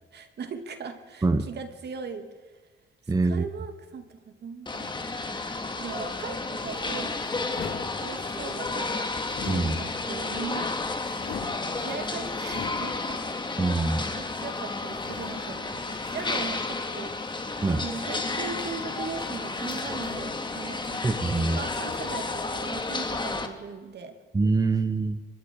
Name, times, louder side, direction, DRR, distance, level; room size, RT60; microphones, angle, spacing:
voice 1, 0.1-2.3 3.2-4.9 5.3-5.5 5.8-7.1 8.0-9.1 9.5-10.7 11.7-13.2 14.2-17.1 17.8-21.0 21.4-24.2, right 5 dB, 55° right, 6 dB, 3.0 m, -39 dB
voice 2, 3.1-3.4 9.5-9.8 13.6-14.0 17.6-17.8 21.0-21.6 24.3-25.2, right 3 dB, 20° right, 9 dB, 1.2 m, -24 dB
sound 1, 4.7-23.5, left 3 dB, 25° left, 2.7 m, -32 dB
sound 2, 6.6-8.6 9.2-10.3 10.7-13.3 13.9-14.0 14.8-16.5 17.8-19.3 19.6-21.2 21.5-22.6 22.9-23.1, left 6 dB, 70° left, 2.9 m, -43 dB
25.5 x 22.0 x 5.0 m, 1.3 s
cardioid pair, 90°, 20 cm